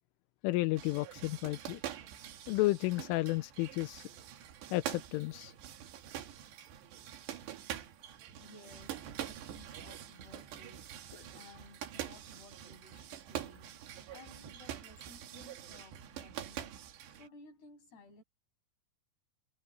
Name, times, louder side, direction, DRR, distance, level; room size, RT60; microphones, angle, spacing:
voice 1, 0.4-1.8 2.5-4.1 4.7-5.5, left 20 dB, 90° left, 3.3 m, -32 dB
sound 1, 0.8-17.3, right 11 dB, 65° right, 3.8 m, -45 dB
voice 2, 8.0-11.0 11.2-13.8 14.1-16.8 17.1-18.2, left 3 dB, 55° left, 10.0 m, -57 dB
omnidirectional pair, 5.7 m